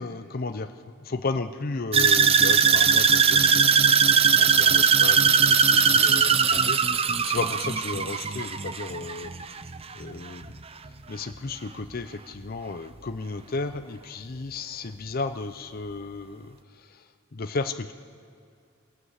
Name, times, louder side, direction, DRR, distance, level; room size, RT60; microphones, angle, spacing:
voice 1, 0.0-9.5 9.9-10.6 11.1-17.9, left 3 dB, 50° left, 8 dB, 0.7 m, -34 dB
sound 1, 1.9-10.1 10.4-10.9 11.3-11.4, right 6 dB, 30° right, 0.6 m, -20 dB
22.5 x 17.0 x 8.2 m, 2.4 s
head